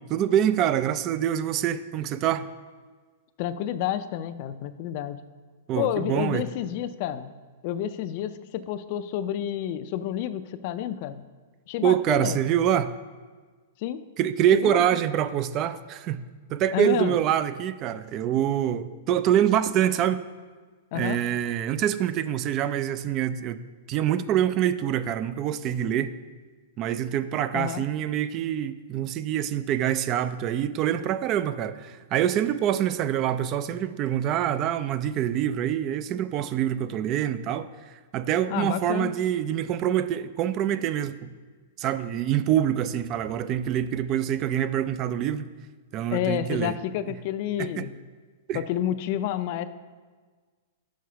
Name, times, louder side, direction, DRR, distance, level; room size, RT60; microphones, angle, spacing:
voice 1, 0.1-2.5 5.7-6.4 11.8-12.9 14.2-16.2 16.5-20.2 20.9-23.6 23.9-26.1 26.8-41.3 41.8-45.5 45.9-46.7 47.6-47.9 48.5-48.6, right 10 dB, 40° right, 0.3 m, -25 dB
voice 2, 3.4-5.3 5.8-7.3 7.6-11.2 11.7-12.4 13.8-14.0 14.5-15.0 16.7-17.2 20.9-21.2 27.5-27.8 38.5-39.1 46.1-47.9 48.5-49.7, left 11 dB, 50° left, 0.4 m, -29 dB
6.3 x 4.6 x 5.7 m
hypercardioid pair, 115°, 0 cm